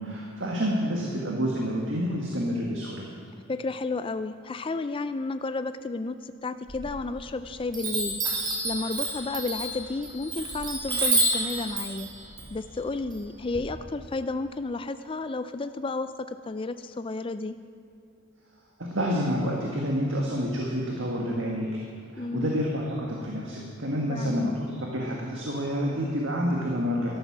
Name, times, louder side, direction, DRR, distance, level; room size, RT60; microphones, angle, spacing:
voice 1, 0.0-3.0 18.8-21.8 22.1-27.2, equal, 60° right, -2 dB, 1.8 m, -28 dB
voice 2, 3.5-8.2 8.6-12.1 12.5-17.6 22.2-22.5 24.1-24.5, left 3 dB, 25° left, 10 dB, 0.4 m, -32 dB
Chime, 6.7-7.4 7.7-13.6, right 1 dB, 20° right, 2.4 m, -29 dB
13.0 x 12.5 x 6.1 m, 2.6 s
head